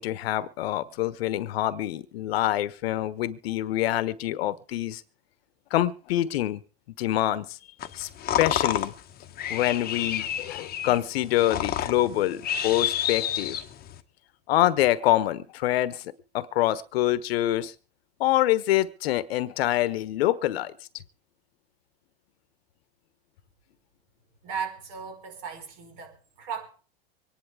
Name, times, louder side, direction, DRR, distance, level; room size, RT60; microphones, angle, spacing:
voice 1, 0.0-5.0 5.7-6.6 7.0-7.5 8.0-8.1 8.4-8.9 9.5-13.6 14.5-16.0 16.3-17.7 18.2-20.7, left 14 dB, 70° left, 1.2 m, -25 dB
sound 1, 7.8-14.0, left 10 dB, 30° left, 1.2 m, -30 dB
voice 2, 24.4-26.7, right 6 dB, 55° right, 5.4 m, -36 dB
25.0 x 10.5 x 3.6 m
hypercardioid pair, 110°, 32 cm